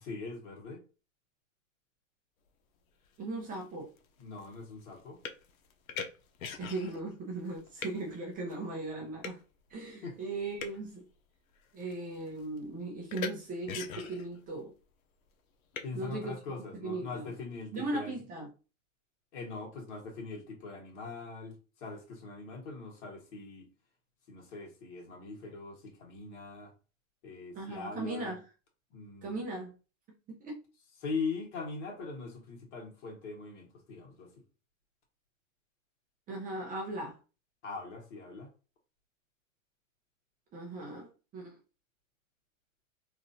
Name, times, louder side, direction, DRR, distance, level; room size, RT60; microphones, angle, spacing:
voice 1, 0.0-0.8 4.2-5.2 10.0-10.2 15.8-18.2 19.3-21.5 21.8-23.7 24.3-26.7 27.2-28.3 28.9-29.4 31.0-34.3 37.6-38.5, left 4 dB, 55° left, 1.6 m, -41 dB
sound 1, 3.1-3.2 3.5-7.1 7.4-8.0 8.5-8.6 9.2-9.4 10.3-10.9 11.6-11.9 12.2-12.6 13.1-13.3 13.7-14.4 15.7-15.8, left 6 dB, 85° left, 0.7 m, -41 dB
voice 2, 3.2-3.9 6.6-9.4 9.7-11.0 11.7-14.7 15.9-16.4 16.7-17.3 17.7-18.5 27.5-28.5 29.2-29.7 30.3-30.6 36.3-37.2 40.5-41.6, right 2 dB, 20° right, 0.7 m, -38 dB
3.1 x 2.5 x 2.7 m
hypercardioid pair, 135°, 41 cm